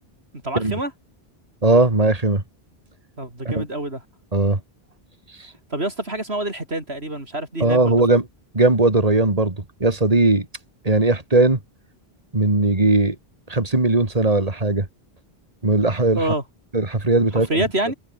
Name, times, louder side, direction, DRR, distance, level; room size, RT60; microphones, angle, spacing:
voice 1, 0.4-0.9 3.2-4.0 5.7-8.0 16.1-16.4 17.5-17.9, right 1 dB, 85° right, 6.8 m, -26 dB
voice 2, 1.6-2.4 3.4-3.7 4.3-4.6 7.6-8.3 8.5-10.5 10.8-11.6 12.3-13.2 13.5-14.9 15.6-16.2 16.7-17.6, right 2 dB, 35° right, 2.9 m, -18 dB
omnidirectional pair, 1.0 m